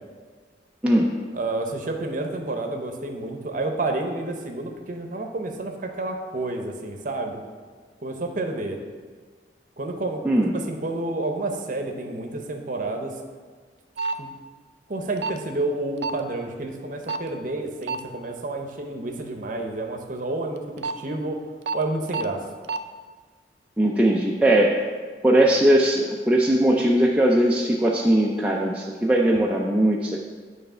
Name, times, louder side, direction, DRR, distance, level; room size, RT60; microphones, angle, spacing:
voice 1, 0.8-1.2 10.2-10.5 23.8-24.8 25.2-30.3, right 1 dB, 5° right, -3 dB, 0.4 m, -20 dB
voice 2, 1.3-7.4 8.0-8.8 9.8-10.2 10.5-13.2 14.2-14.3 14.9-21.4 21.7-22.4, right 2 dB, 50° right, 3 dB, 0.8 m, -29 dB
sound 1, 14.0-14.2 15.2-15.4 16.0-16.2 17.1-17.3 17.8-18.0 20.6-20.9 21.7-21.8 22.1-22.2 22.6-22.8, right 4 dB, 80° right, 0.4 m, -27 dB
9.2 x 3.2 x 5.5 m, 1.5 s
head